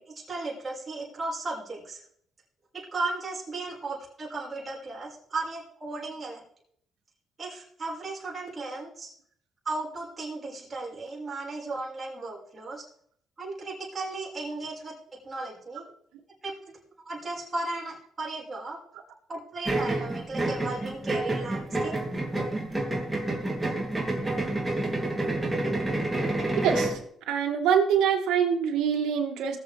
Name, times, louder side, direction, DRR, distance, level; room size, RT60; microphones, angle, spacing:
voice 1, 0.0-2.0 2.7-6.4 7.4-9.1 9.6-12.9 13.4-14.9 15.2-15.9 16.4-16.7 17.0-18.8 19.3-22.0, right 2 dB, 30° right, -5 dB, 5.5 m, -35 dB
sound 1, 19.6-27.0, right 2 dB, 15° right, 3.0 m, -29 dB
voice 2, 26.6-27.0 27.3-29.6, right 7 dB, 85° right, 2 dB, 2.2 m, -24 dB
20.0 x 7.6 x 3.5 m, 0.65 s
cardioid pair, 90°, 0 cm